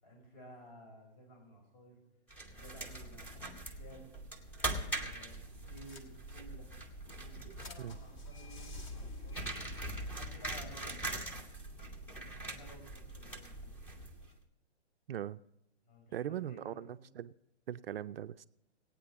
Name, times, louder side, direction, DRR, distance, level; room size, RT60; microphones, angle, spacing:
voice 1, 0.0-2.0 2.5-4.1 4.7-6.7 7.1-9.5 10.0-11.1 12.3-14.0 15.8-17.1, equal, 45° left, 2 dB, 5.6 m, -55 dB
sound 1, 2.3-14.4, right 2 dB, 5° left, 0.8 m, -42 dB
sound 2, 5.8-6.6 7.1-10.2, left 2 dB, 25° left, 1.1 m, -49 dB
voice 2, 15.1-15.4 16.1-17.3 17.7-18.5, right 11 dB, 60° right, 12 dB, 0.4 m, -40 dB
17.0 x 9.0 x 5.1 m, 0.89 s
hypercardioid pair, 150°, 34 cm